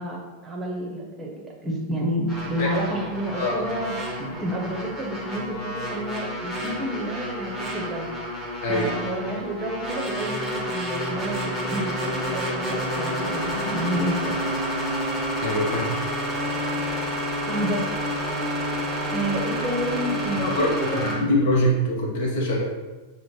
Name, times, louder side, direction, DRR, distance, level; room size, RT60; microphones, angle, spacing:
voice 1, 0.0-8.1 8.7-14.3 17.4-17.9 19.1-21.3, right 1 dB, 15° right, -2 dB, 0.8 m, -30 dB
sound 1, 2.3-21.2, equal, 10° left, 1.1 m, -29 dB
voice 2, 3.4-3.7 8.6-8.9 15.4-15.9 20.4-22.6, left 1 dB, 55° left, -1 dB, 0.7 m, -24 dB
6.3 x 2.1 x 3.1 m, 1.2 s
figure-of-eight pair, 90°, 0 cm